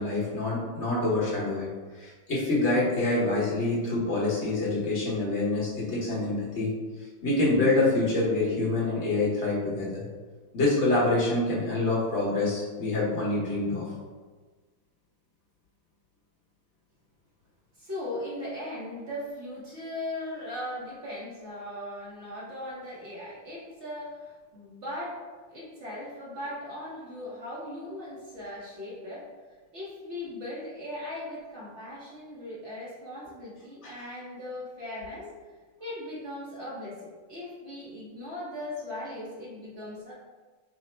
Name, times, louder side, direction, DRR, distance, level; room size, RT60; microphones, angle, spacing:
voice 1, 0.0-1.7 2.0-6.7 7.2-10.0 10.5-13.8 33.8-33.9, left 2 dB, 45° left, -6 dB, 1.0 m, -26 dB
voice 2, 17.8-25.2 25.5-29.3 29.7-35.3 35.8-40.1, left 1 dB, 50° right, -7 dB, 0.8 m, -38 dB
4.0 x 2.1 x 4.2 m, 1.4 s
omnidirectional pair, 2.3 m